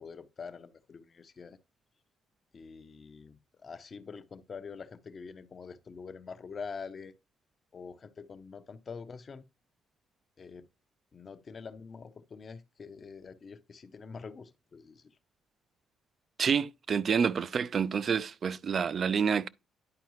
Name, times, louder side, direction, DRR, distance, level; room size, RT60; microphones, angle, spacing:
voice 1, 0.0-1.6 2.5-7.1 7.7-9.4 10.4-10.7 11.1-15.1, left 5 dB, 40° left, 0.7 m, -45 dB
voice 2, 16.4-19.5, right 6 dB, 50° right, 0.4 m, -28 dB
10.5 x 4.5 x 3.1 m
cardioid pair, 100°, 0 cm